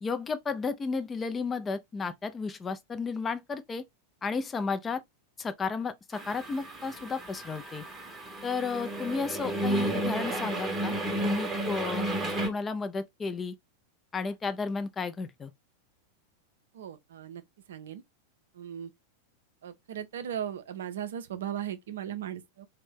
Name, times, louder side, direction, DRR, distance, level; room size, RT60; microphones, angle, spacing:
voice 1, 0.0-3.8 4.2-5.0 5.4-7.8 8.4-12.2 12.4-13.5 14.1-15.5, left 4 dB, 20° left, 0.4 m, -33 dB
sound 1, 6.1-12.5, right 1 dB, 15° right, 0.8 m, -32 dB
voice 2, 16.7-17.4 17.7-18.0 18.5-18.9 19.6-22.7, right 9 dB, 60° right, 0.4 m, -37 dB
2.5 x 2.1 x 3.4 m
figure-of-eight pair, 90°, 0 cm